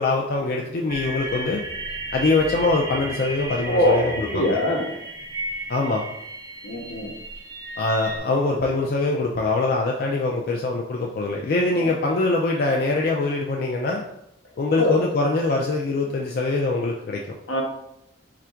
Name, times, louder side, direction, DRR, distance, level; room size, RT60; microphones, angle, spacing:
voice 1, 0.0-1.6 2.1-4.6 5.7-6.1 7.8-14.0 14.6-17.2, left 3 dB, 50° left, -1 dB, 0.4 m, -23 dB
sound 1, 0.9-8.2, right 2 dB, 15° right, 0.6 m, -34 dB
voice 2, 3.6-4.9 6.6-7.1 11.8-11.9 14.8-14.9 17.5-17.6, left 1 dB, 80° left, -1 dB, 1.0 m, -22 dB
3.4 x 2.5 x 4.4 m, 0.80 s
head